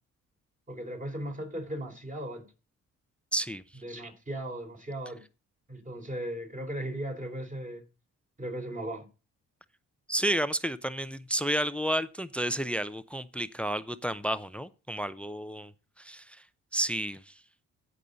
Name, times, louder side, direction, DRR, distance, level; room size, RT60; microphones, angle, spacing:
voice 1, 0.7-2.5 3.8-5.2 5.7-7.8 8.4-9.1, right 1 dB, 25° right, 3.8 m, -37 dB
voice 2, 3.3-3.6 10.1-15.7 16.0-16.4 16.7-17.3, right 1 dB, 5° left, 0.6 m, -31 dB
15.0 x 5.5 x 3.9 m
cardioid pair, 90°, 30 cm